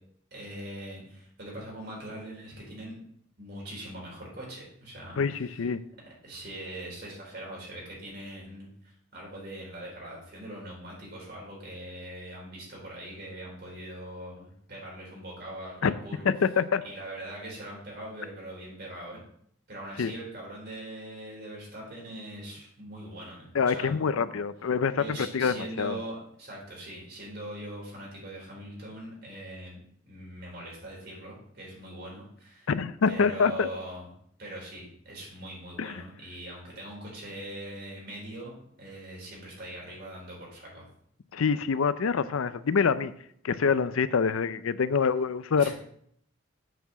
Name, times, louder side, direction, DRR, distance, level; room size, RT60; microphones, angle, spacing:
voice 1, 0.3-3.0 3.4-5.7 6.2-16.2 16.8-19.2 19.7-24.2 25.0-32.7 33.1-34.1 34.4-40.8 45.6-45.7, right 1 dB, 50° right, -4 dB, 4.1 m, -42 dB
voice 2, 5.2-5.8 15.8-15.9 16.2-16.8 20.0-20.1 23.5-26.0 32.7-33.7 35.8-36.0 41.3-43.1 43.4-45.7, left 5 dB, 90° left, 14 dB, 0.5 m, -26 dB
8.0 x 4.7 x 6.9 m, 0.67 s
head